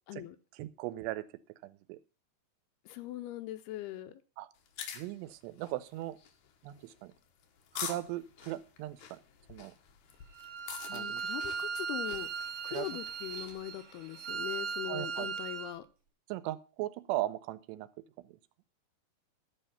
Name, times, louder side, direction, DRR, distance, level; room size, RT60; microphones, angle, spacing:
voice 1, 0.6-1.2 1.6-2.0 4.4-4.5 4.9-6.2 6.6-7.1 7.7-9.2 9.5-9.8 10.9-11.2 12.7-12.9 14.9-15.3 16.3-17.9 18.2-18.4, right 15 dB, 85° right, 15 dB, 2.8 m, -38 dB
voice 2, 2.9-4.2 10.9-12.3 12.6-15.8, left 14 dB, 80° left, 10 dB, 2.5 m, -41 dB
sound 1, 4.6-13.6, left 7 dB, 65° left, 2.1 m, -47 dB
Bowed string instrument, 10.3-15.7, right 5 dB, 45° right, 2.2 m, -38 dB
12.0 x 5.7 x 5.6 m, 0.34 s
omnidirectional pair, 4.9 m